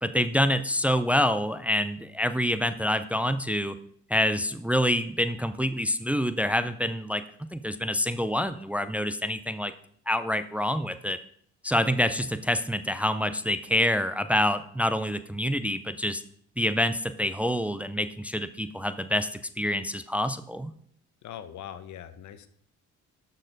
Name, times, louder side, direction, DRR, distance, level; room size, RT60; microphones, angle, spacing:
voice 1, 0.0-3.7 4.1-9.7 10.1-11.2 11.6-16.2 16.6-19.3 19.6-20.7, left 1 dB, 5° right, 11 dB, 0.5 m, -27 dB
voice 2, 21.2-22.5, left 10 dB, 70° left, 12 dB, 0.9 m, -41 dB
11.5 x 6.6 x 3.9 m, 0.63 s
cardioid pair, 90°, 30 cm